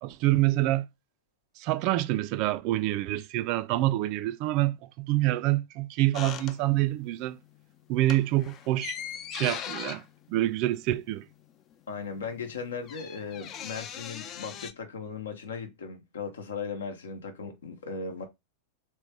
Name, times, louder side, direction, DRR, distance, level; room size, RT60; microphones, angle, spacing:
voice 1, 0.0-0.9 1.6-7.4 7.9-9.0 9.3-11.3, right 16 dB, 45° right, 0.3 m, -27 dB
sound 1, 6.1-7.1 7.4-7.6 8.0-11.4 11.7-11.8 12.0-14.7, left 9 dB, 35° left, 0.4 m, -40 dB
voice 2, 11.9-18.3, left 5 dB, 65° left, 0.9 m, -37 dB
3.3 x 3.0 x 3.4 m
figure-of-eight pair, 90°, 0 cm